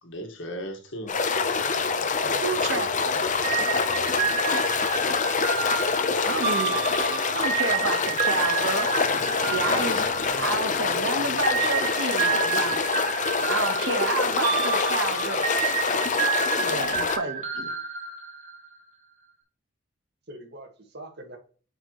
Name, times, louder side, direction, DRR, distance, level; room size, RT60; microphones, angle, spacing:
voice 1, 0.0-1.1 2.7-3.7 6.5-6.6 7.0-7.7, equal, 80° left, 1.8 m, -41 dB
sound 1, 1.1-17.2, left 5 dB, 40° left, 0.8 m, -26 dB
voice 2, 1.4-2.7 3.0-3.2 20.3-21.4, right 1 dB, 60° right, 2.0 m, -43 dB
voice 3, 2.4-2.9 6.2-9.0 9.4-12.7 13.4-15.7 16.6-17.7, right 3 dB, 75° right, 1.4 m, -30 dB
sound 2, 3.4-10.9 11.4-18.7, right 6 dB, 40° right, 1.7 m, -30 dB
8.7 x 5.0 x 3.1 m
head